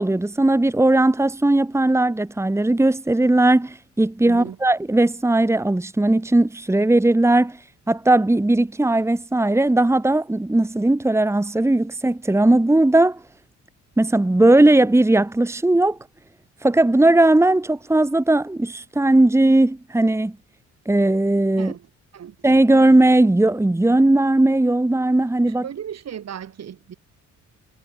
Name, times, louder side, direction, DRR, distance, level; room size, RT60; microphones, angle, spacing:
voice 1, 0.0-7.6 7.9-13.2 14.0-16.0 16.6-20.3 20.8-21.7 22.4-25.7, right 2 dB, 10° right, 1.6 m, -18 dB
voice 2, 4.3-4.6 21.6-21.9 22.1-22.4 25.5-26.9, right 9 dB, 55° right, 4.1 m, -35 dB
cardioid pair, 90°, 30 cm